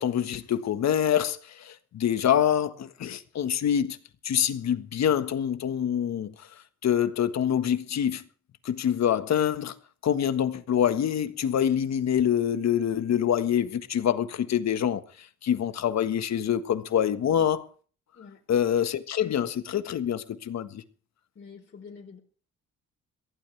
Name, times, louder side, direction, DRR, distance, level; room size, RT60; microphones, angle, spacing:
voice 1, 0.0-4.0 4.2-6.3 6.8-8.2 8.6-9.8 10.0-15.0 15.4-17.7 18.5-20.8, left 9 dB, 60° left, 1.6 m, -25 dB
voice 2, 21.3-22.2, left 5 dB, 40° left, 4.3 m, -46 dB
23.0 x 16.0 x 3.4 m
cardioid pair, 90°, 30 cm